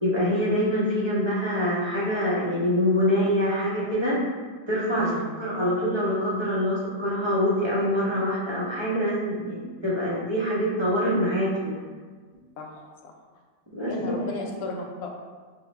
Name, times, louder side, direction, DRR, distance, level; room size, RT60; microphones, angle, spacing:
voice 1, 0.0-4.2 4.7-5.1 5.4-11.8 13.7-14.1, equal, 25° right, -8 dB, 0.6 m, -25 dB
voice 2, 5.0-5.4 12.6-13.1 13.9-15.1, left 3 dB, 65° left, 1 dB, 0.9 m, -35 dB
5.5 x 2.2 x 3.1 m, 1.5 s
omnidirectional pair, 1.8 m